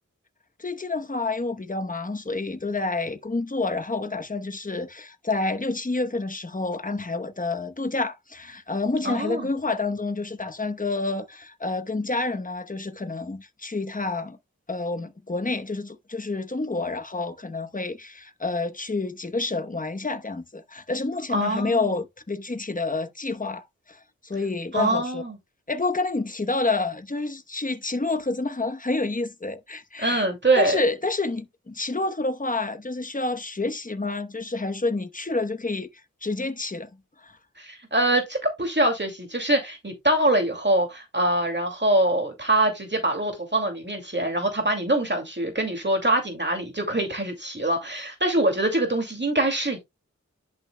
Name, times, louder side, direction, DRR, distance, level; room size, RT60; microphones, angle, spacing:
voice 1, 0.6-14.4 14.7-25.2 25.7-30.2 30.6-35.9 36.2-36.9 37.2-37.4, left 3 dB, 25° left, 1.0 m, -28 dB
voice 2, 9.0-9.5 21.3-21.9 24.7-25.4 30.0-30.8 37.6-49.8, right 1 dB, 35° right, 2.4 m, -24 dB
10.5 x 6.2 x 2.2 m
wide cardioid pair, 55°, 30 cm